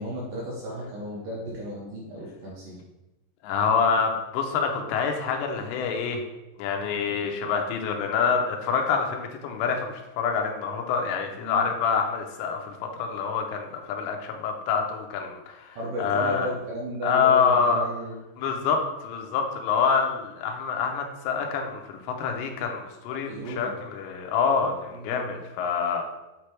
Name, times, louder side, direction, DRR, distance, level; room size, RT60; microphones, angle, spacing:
voice 1, 0.0-2.8 11.4-11.7 15.8-18.2 23.1-23.8 24.9-25.3, equal, 75° right, -5 dB, 2.1 m, -34 dB
voice 2, 3.4-6.2 6.6-16.5 17.0-17.9 18.4-26.0, left 6 dB, 85° left, 3 dB, 2.9 m, -26 dB
7.5 x 3.3 x 4.6 m, 1.0 s
omnidirectional pair, 5.1 m